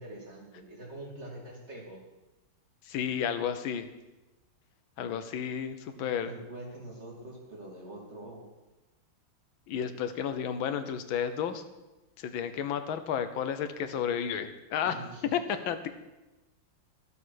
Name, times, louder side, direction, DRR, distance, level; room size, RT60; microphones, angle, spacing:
voice 1, 0.0-2.0 5.9-8.5 14.8-15.4, right 1 dB, 35° right, -1 dB, 2.6 m, -44 dB
voice 2, 2.8-3.9 5.0-6.3 9.7-11.6 12.2-15.0 15.3-15.9, left 8 dB, 90° left, 10 dB, 1.6 m, -32 dB
12.5 x 7.4 x 6.2 m, 1.1 s
omnidirectional pair, 2.1 m